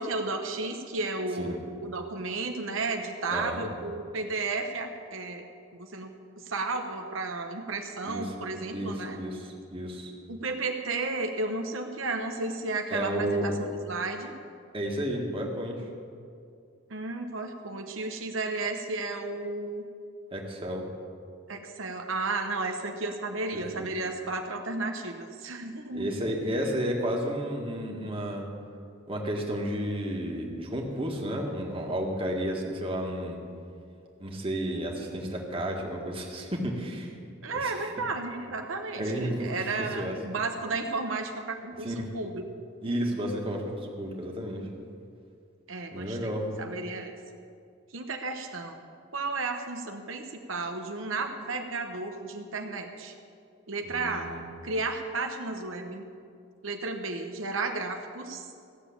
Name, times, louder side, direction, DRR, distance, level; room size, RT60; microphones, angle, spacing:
voice 1, 0.0-5.5 5.8-9.2 10.3-14.3 16.9-19.8 21.5-26.2 37.4-42.5 45.7-46.3 46.6-47.1 47.9-48.8 49.1-53.1 53.7-54.3 54.6-56.1 56.6-58.4, right 3 dB, 85° right, 4 dB, 1.0 m, -33 dB
voice 2, 3.3-3.6 8.0-8.3 8.7-10.1 12.9-13.5 14.7-15.8 20.3-20.9 23.5-23.9 25.9-28.5 29.1-33.4 34.2-37.1 37.5-37.8 38.9-40.2 41.8-42.1 42.8-44.7 45.9-46.5 53.8-54.4, equal, 30° right, 0 dB, 1.8 m, -32 dB
15.0 x 7.2 x 8.6 m, 2.4 s
head